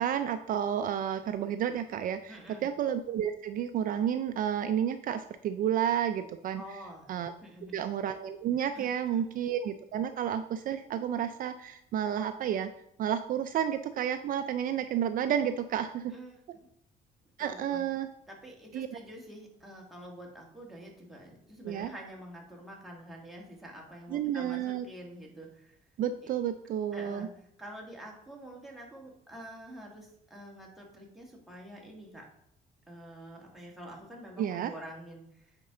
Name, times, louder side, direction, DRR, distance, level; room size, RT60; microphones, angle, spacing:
voice 1, 0.0-6.6 7.1-7.3 7.7-12.7 13.0-16.1 17.4-18.1 18.7-18.9 21.6-21.9 24.1-24.8 26.0-27.3 34.4-34.7, right 9 dB, 55° right, 9 dB, 0.4 m, -31 dB
voice 2, 2.3-2.7 6.6-7.1 7.4-7.9 8.8-8.9 16.1-16.7 17.4-17.8 18.3-25.8 26.2-26.3 26.9-32.3 32.9-35.5, equal, ahead, -3 dB, 1.9 m, -47 dB
9.4 x 4.4 x 3.8 m, 0.74 s
cardioid pair, 110°, 17 cm